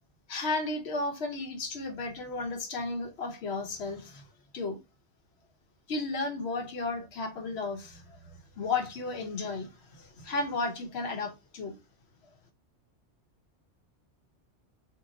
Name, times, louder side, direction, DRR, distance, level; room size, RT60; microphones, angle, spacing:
voice 1, 0.3-4.3 4.5-4.8 5.9-11.8, left 3 dB, 70° left, 1.0 m, -34 dB
2.8 x 2.3 x 3.7 m
omnidirectional pair, 1.2 m